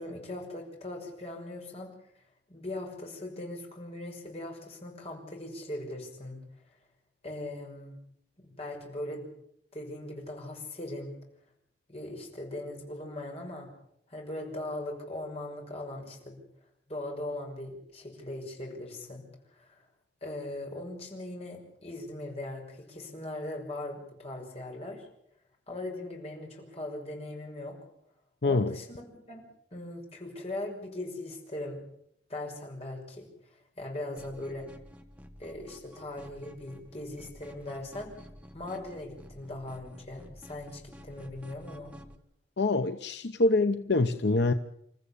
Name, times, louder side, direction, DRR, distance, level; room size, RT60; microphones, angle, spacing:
voice 1, 0.0-1.9 2.5-6.4 7.2-7.9 8.4-9.3 9.7-11.1 11.9-13.7 14.1-16.4 16.9-19.2 19.5-19.8 20.2-25.1 25.7-27.8 28.4-29.4 29.7-31.8 32.3-34.7 35.4-38.2 38.5-42.0, left 1 dB, 35° left, 1 dB, 6.0 m, -39 dB
voice 2, 28.4-28.7 42.6-44.5, left 2 dB, 65° left, 8 dB, 0.8 m, -25 dB
sound 1, 34.2-42.1, equal, 5° right, 1.4 m, -51 dB
28.0 x 14.0 x 8.4 m, 0.75 s
head